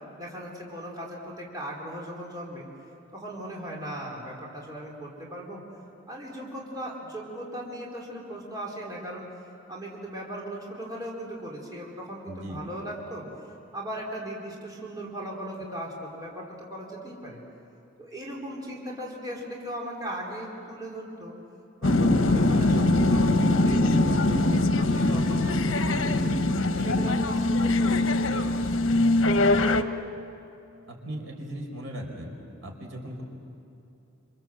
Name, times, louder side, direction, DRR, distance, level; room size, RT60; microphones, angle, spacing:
voice 1, 0.2-2.7 3.1-5.6 6.1-9.3 9.7-13.2 13.7-17.4 18.0-21.4 21.8-24.4 24.8-26.3 26.7-29.0, right 1 dB, 20° right, -3 dB, 4.1 m, -38 dB
voice 2, 12.3-12.6 30.9-32.3 32.6-33.2, right 1 dB, 70° right, 1 dB, 5.2 m, -38 dB
sound 1, 21.8-29.8, left 2 dB, 70° left, 1.2 m, -22 dB
27.5 x 27.0 x 7.8 m, 2.8 s
head